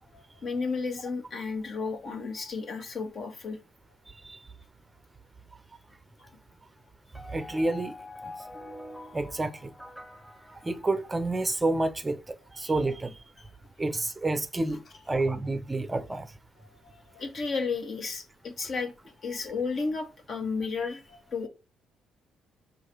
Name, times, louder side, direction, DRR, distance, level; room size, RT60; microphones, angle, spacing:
voice 1, 0.1-3.6 6.2-6.3 13.4-13.5 16.9-21.5, left 4 dB, 50° left, 1.4 m, -33 dB
voice 2, 4.1-4.4 7.3-7.9 8.2-8.3 9.1-9.7 10.6-13.2 13.8-14.8 15.1-16.3, right 2 dB, 20° right, 0.6 m, -29 dB
sound 1, 7.1-11.5, left 2 dB, 5° left, 1.1 m, -46 dB
4.7 x 2.5 x 4.4 m
hypercardioid pair, 50°, 0 cm